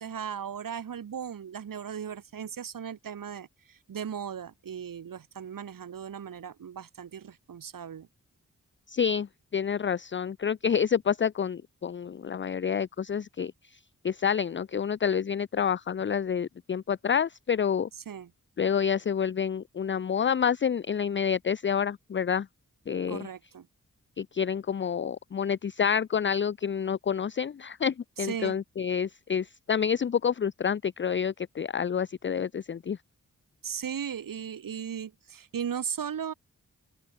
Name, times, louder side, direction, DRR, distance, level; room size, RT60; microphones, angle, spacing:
voice 1, 0.0-8.1 17.9-18.3 23.1-23.7 28.2-28.6 33.6-36.3, right 8 dB, 85° right, 1.2 m, -37 dB
voice 2, 8.9-9.3 9.5-13.8 14.0-17.9 18.6-22.5 22.9-23.3 24.2-33.0, left 7 dB, 35° left, 0.5 m, -28 dB
open air
cardioid pair, 65°, 32 cm